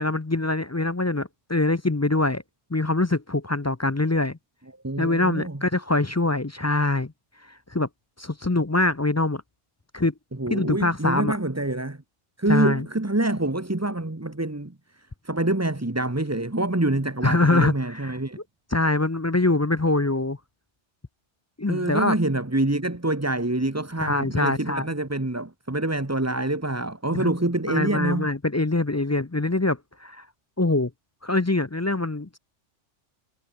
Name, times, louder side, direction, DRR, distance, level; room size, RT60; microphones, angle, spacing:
voice 1, 0.0-2.4 2.7-4.4 5.0-7.1 7.7-7.9 8.2-9.4 9.9-10.1 10.5-11.4 12.5-12.8 17.2-18.1 18.7-20.4 21.6-22.2 24.0-24.9 27.1-27.3 27.7-30.2 30.6-30.9 31.2-32.4, left 2 dB, 20° left, 0.4 m, -23 dB
voice 2, 4.8-5.6 10.3-12.0 12.4-18.4 21.7-28.3, right 2 dB, 15° right, 1.3 m, -26 dB
omnidirectional pair, 1.2 m